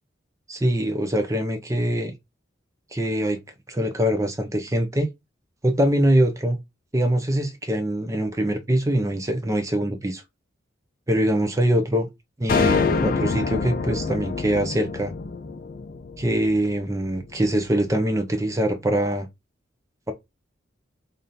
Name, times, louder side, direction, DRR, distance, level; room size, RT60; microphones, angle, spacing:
voice 1, 0.5-2.1 2.9-3.4 3.7-5.1 5.6-6.6 6.9-10.2 11.1-12.1 12.4-15.1 16.2-19.3, right 1 dB, 15° right, 0.5 m, -23 dB
sound 1, 12.5-16.9, left 5 dB, 45° left, 0.4 m, -26 dB
3.5 x 2.6 x 4.0 m
head